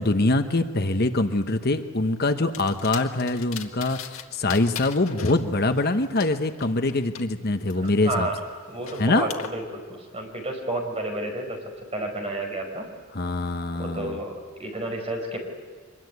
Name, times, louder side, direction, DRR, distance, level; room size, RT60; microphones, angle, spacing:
voice 1, 0.0-8.3 9.0-9.3 13.1-14.2, left 2 dB, 45° left, 8 dB, 1.0 m, -24 dB
sound 1, 2.5-4.2 4.5-7.2 7.7-9.5, left 7 dB, 75° left, 1.8 m, -39 dB
voice 2, 7.7-8.3 8.7-11.6 11.9-12.9 13.8-15.4, right 1 dB, 30° right, 2 dB, 4.7 m, -31 dB
24.5 x 21.5 x 9.5 m, 1.5 s
head